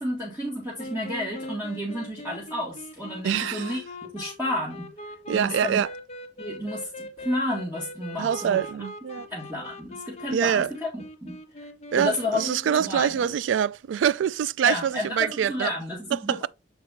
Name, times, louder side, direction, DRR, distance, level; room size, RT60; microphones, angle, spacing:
voice 1, 0.0-3.8 4.1-4.9 5.3-5.8 6.4-8.6 9.3-11.7 11.9-12.4 12.8-13.2 14.7-16.5, left 1 dB, 10° right, 2.0 m, -31 dB
sound 1, 0.8-13.4, left 1 dB, 35° left, 0.9 m, -41 dB
voice 2, 3.2-3.8 5.3-5.9 8.2-9.3 10.3-10.7 11.9-15.7 16.1-16.5, right 8 dB, 80° right, 0.3 m, -25 dB
7.1 x 4.7 x 3.6 m
head